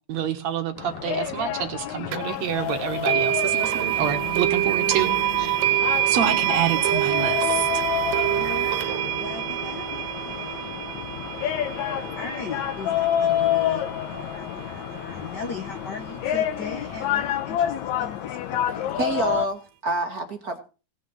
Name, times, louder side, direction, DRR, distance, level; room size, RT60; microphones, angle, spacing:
voice 1, 0.1-5.6 6.1-7.8, right 9 dB, 60° right, 2.2 m, -28 dB
sound 1, 0.8-19.5, left 11 dB, 70° left, 2.1 m, -29 dB
sound 2, 2.1-2.2 3.1-14.0, right 14 dB, 85° right, 2.6 m, -26 dB
sound 3, 2.6-17.3, left 2 dB, 5° left, 2.3 m, -45 dB
voice 2, 8.4-10.5 12.2-18.9, left 4 dB, 90° left, 0.9 m, -38 dB
voice 3, 18.9-20.6, right 3 dB, 45° right, 1.3 m, -27 dB
18.0 x 6.1 x 7.2 m
omnidirectional pair, 4.0 m